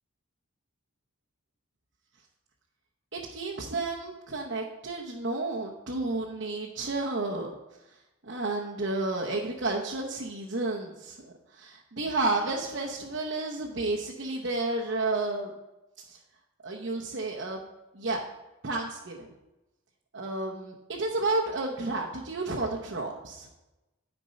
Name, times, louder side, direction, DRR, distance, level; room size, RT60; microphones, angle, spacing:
voice 1, 3.1-7.5 8.2-15.5 16.1-16.2 16.6-17.6 17.9-18.2 18.6-19.3 20.1-23.5, right 2 dB, 60° right, -3 dB, 0.9 m, -31 dB
10.5 x 4.5 x 5.4 m, 1.0 s
head